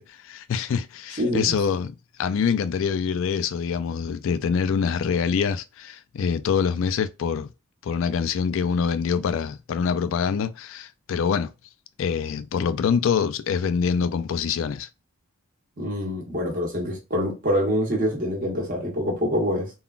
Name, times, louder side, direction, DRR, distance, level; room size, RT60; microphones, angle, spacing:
voice 1, 0.2-7.5 7.8-11.5 12.0-14.9, left 6 dB, 65° left, 0.3 m, -25 dB
voice 2, 1.2-1.6 15.8-19.7, equal, 40° right, 1.1 m, -25 dB
3.6 x 2.3 x 2.3 m
head